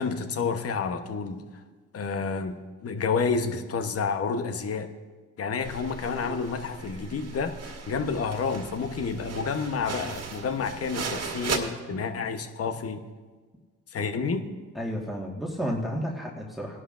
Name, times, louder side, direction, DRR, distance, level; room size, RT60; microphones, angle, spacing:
voice 1, 0.0-1.4 1.9-4.9 5.4-13.0 13.9-14.5, left 5 dB, 50° left, 7 dB, 1.1 m, -29 dB
sound 1, 5.6-11.6, right 5 dB, 55° right, 1.8 m, -37 dB
voice 2, 14.7-16.8, equal, ahead, -3 dB, 1.6 m, -32 dB
19.0 x 11.0 x 2.6 m, 1.4 s
cardioid pair, 90°, 30 cm